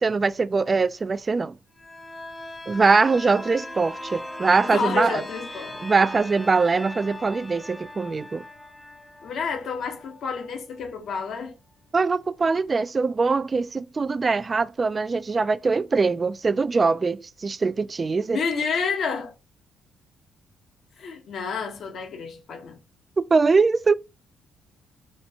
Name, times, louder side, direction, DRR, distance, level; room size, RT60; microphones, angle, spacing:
voice 1, 0.0-1.6 2.7-5.2 5.8-8.4 11.9-18.4 23.2-24.0, right 4 dB, 30° right, 0.3 m, -22 dB
sound 1, 1.8-11.3 11.7-11.8, left 1 dB, 15° left, 0.8 m, -40 dB
voice 2, 4.6-5.8 9.2-11.5 18.3-19.3 21.0-22.8, left 5 dB, 65° left, 1.1 m, -29 dB
4.2 x 3.3 x 2.8 m
cardioid pair, 90°, 0 cm